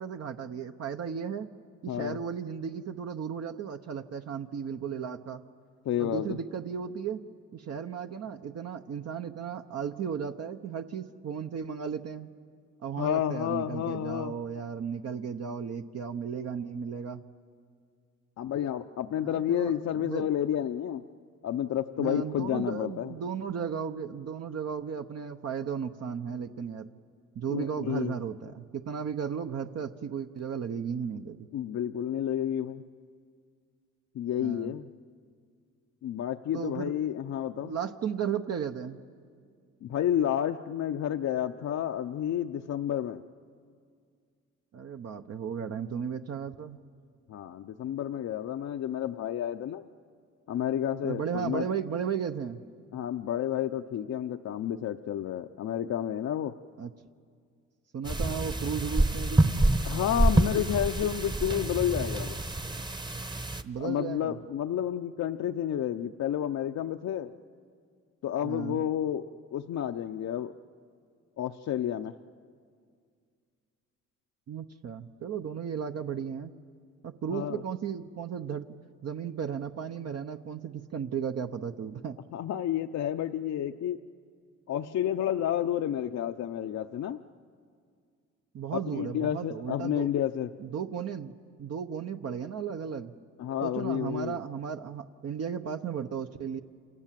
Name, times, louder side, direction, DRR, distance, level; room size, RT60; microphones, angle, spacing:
voice 1, 0.0-1.5 1.8-5.4 6.0-7.2 7.5-12.3 12.8-17.2 19.2-20.3 22.0-26.9 27.4-31.4 34.4-34.7 36.5-36.9 37.6-39.0 44.7-46.8 51.0-52.6 56.8-56.9 57.9-59.5 63.6-64.4 68.4-68.8 74.5-76.5 77.0-78.7 79.0-82.2 88.5-90.1 90.6-93.1 93.6-96.6, right 7 dB, 55° right, 6 dB, 0.9 m, -35 dB
voice 2, 1.9-2.2 5.8-6.4 13.0-14.4 18.4-21.0 21.4-23.1 27.5-28.1 31.5-32.8 34.1-34.9 36.0-37.7 39.8-43.2 47.3-49.9 50.5-51.7 52.9-56.5 59.8-62.4 63.8-67.3 68.2-69.2 69.5-70.5 71.4-72.1 77.3-77.6 82.3-84.0 84.7-87.2 88.9-90.5 93.4-94.4, left 10 dB, 60° left, 6 dB, 0.7 m, -30 dB
sound 1, 58.0-63.6, right 1 dB, 15° right, 1.0 m, -27 dB
29.0 x 27.0 x 7.6 m, 2.1 s
cardioid pair, 90°, 30 cm